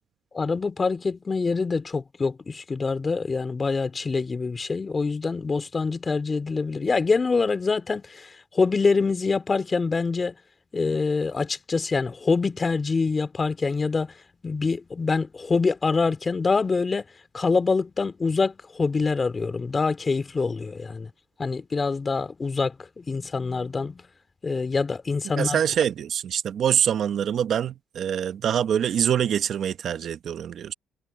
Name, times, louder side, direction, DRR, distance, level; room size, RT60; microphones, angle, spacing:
voice 1, 0.3-10.3 10.7-14.1 14.4-17.0 17.3-21.1 21.4-24.0 24.4-25.6, left 4 dB, 30° left, 2.4 m, -25 dB
voice 2, 25.4-30.7, right 9 dB, 65° right, 0.9 m, -25 dB
cardioid pair, 90°, 0 cm